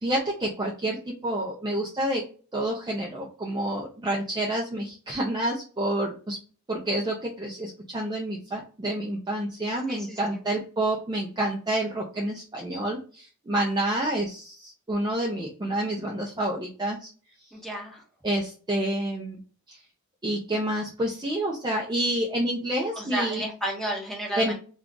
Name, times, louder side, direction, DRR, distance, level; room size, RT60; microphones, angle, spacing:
voice 1, 0.0-2.2 2.5-6.4 6.7-17.1 18.2-19.4 19.7-19.8 20.2-23.4 24.4-24.5, right 1 dB, 20° right, -1 dB, 0.4 m, -28 dB
voice 2, 9.9-10.2 17.5-18.0 22.9-24.5, right 1 dB, ahead, -2 dB, 0.9 m, -32 dB
2.4 x 2.3 x 3.7 m, 0.39 s
head